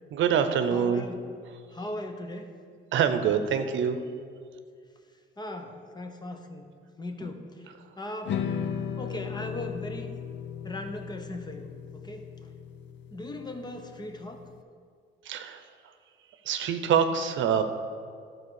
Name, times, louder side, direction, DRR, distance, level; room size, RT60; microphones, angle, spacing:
voice 1, 0.1-1.0 2.9-4.0 15.2-15.6 16.5-17.6, right 7 dB, 75° right, 8 dB, 0.7 m, -25 dB
voice 2, 0.7-1.2 1.7-2.5 5.4-6.7 7.0-8.4 9.0-10.2 10.6-12.3 13.1-14.5, left 1 dB, 20° left, 5 dB, 1.0 m, -38 dB
sound 1, 8.3-14.5, left 7 dB, 65° left, 0.5 m, -36 dB
12.0 x 4.6 x 6.4 m, 2.2 s
cardioid pair, 90°, 20 cm